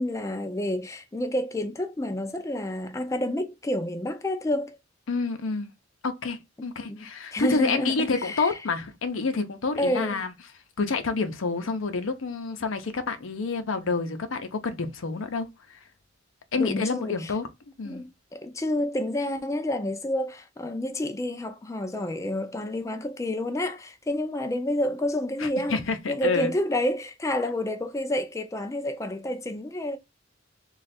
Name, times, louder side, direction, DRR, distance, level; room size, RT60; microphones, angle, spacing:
voice 1, 0.0-4.8 6.6-7.1 7.3-8.6 9.8-10.2 16.6-17.3 17.9-25.8 26.1-30.0, left 1 dB, 15° left, 0.4 m, -29 dB
voice 2, 5.1-5.7 6.0-10.3 10.8-15.8 16.5-17.5 17.8-18.0 25.4-26.5, left 4 dB, 80° left, 0.6 m, -28 dB
3.2 x 2.4 x 4.1 m
head